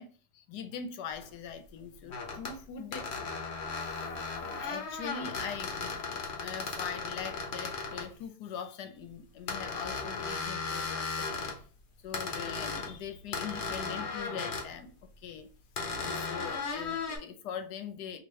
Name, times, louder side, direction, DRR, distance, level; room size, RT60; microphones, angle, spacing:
voice 1, 0.0-3.3 3.9-11.6 12.0-15.5 15.9-18.2, left 7 dB, 75° left, 1.2 m, -42 dB
sound 1, 1.2-1.3 2.1-2.6 2.9-8.1 9.5-11.6 12.1-12.9 13.3-14.7 15.8-17.2, left 4 dB, 50° left, 0.9 m, -36 dB
3.0 x 2.9 x 4.6 m
omnidirectional pair, 1.8 m